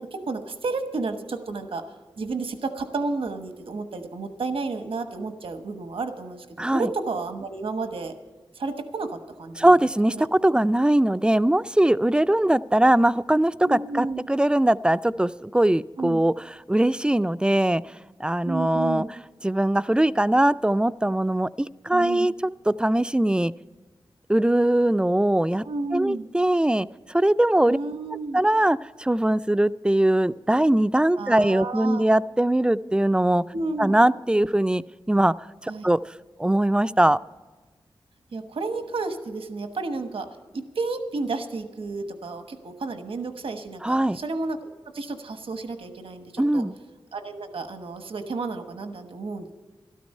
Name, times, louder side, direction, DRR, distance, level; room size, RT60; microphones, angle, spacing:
voice 1, 0.0-1.8 2.2-8.1 8.5-9.8 10.1-10.3 13.6-14.2 16.0-16.2 18.4-19.1 21.9-22.3 25.6-26.3 27.7-28.4 31.2-32.0 33.5-33.9 35.7-35.9 38.3-40.3 40.5-46.6 47.1-49.5, right 3 dB, 85° right, 8 dB, 1.1 m, -31 dB
voice 2, 6.6-6.9 9.6-19.1 19.4-23.5 24.3-25.6 25.9-27.8 28.3-33.4 33.8-35.3 35.6-36.0 36.4-37.2 43.8-44.2 46.4-46.7, right 1 dB, 10° right, 15 dB, 0.3 m, -21 dB
13.5 x 12.5 x 5.4 m, 1.3 s
wide cardioid pair, 75°, 9 cm